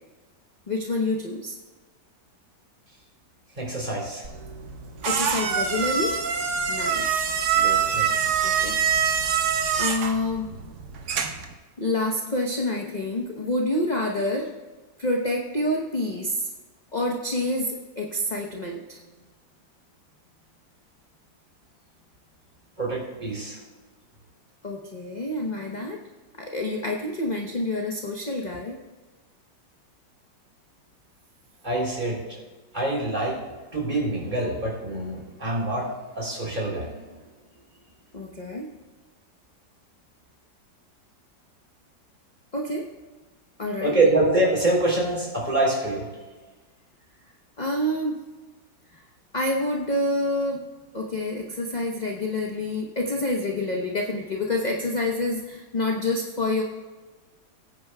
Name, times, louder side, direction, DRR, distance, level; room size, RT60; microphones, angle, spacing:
voice 1, 0.7-1.6 5.0-6.2 6.7-7.2 7.6-7.8 8.4-8.8 9.1-10.5 11.8-14.5 15.0-16.5 16.9-19.0 24.6-26.0 26.4-28.8 38.1-38.7 42.5-42.9 43.6-44.0 47.6-48.2 48.9-49.0 49.3-50.6 50.9-56.6, left 1 dB, 35° left, 0 dB, 0.7 m, -28 dB
voice 2, 3.6-4.3 7.9-8.1 22.8-23.6 31.6-32.4 32.7-33.4 33.7-37.0 43.8-46.1, right 2 dB, 25° right, -3 dB, 3.4 m, -25 dB
sound 1, 4.2-11.5, right 7 dB, 50° right, 1.0 m, -25 dB
19.5 x 9.4 x 2.3 m, 1.3 s
omnidirectional pair, 2.0 m